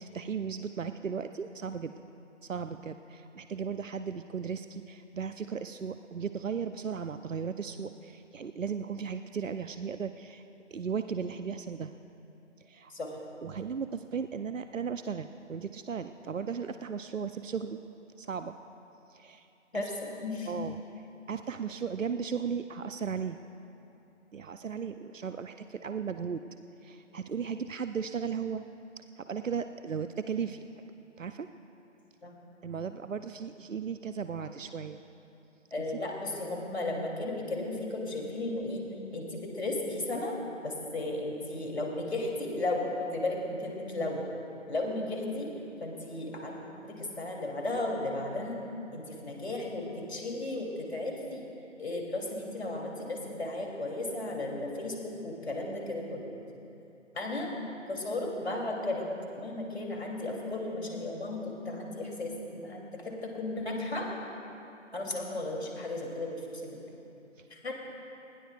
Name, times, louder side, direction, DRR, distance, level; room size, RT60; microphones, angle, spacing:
voice 1, 0.0-1.9 2.4-10.4 10.7-11.9 12.6-12.9 13.4-17.8 18.2-18.6 19.1-19.5 19.7-19.8 20.5-20.8 21.3-23.4 24.3-26.4 26.8-28.6 29.2-30.6 31.2-31.5 32.6-35.0 67.4-67.5, right 6 dB, 85° right, 10 dB, 0.6 m, -36 dB
voice 2, 20.2-20.5 32.2-32.3 35.7-38.9 39.1-40.4 40.6-44.2 44.7-45.5 45.8-46.6 46.8-48.6 48.9-51.4 51.8-54.9 55.2-56.2 57.1-57.5 57.9-59.1 59.4-64.1 64.9-66.8 67.5-67.9, left 2 dB, 55° left, 0 dB, 2.9 m, -35 dB
20.0 x 17.0 x 2.3 m, 2.8 s
figure-of-eight pair, 160°, 38 cm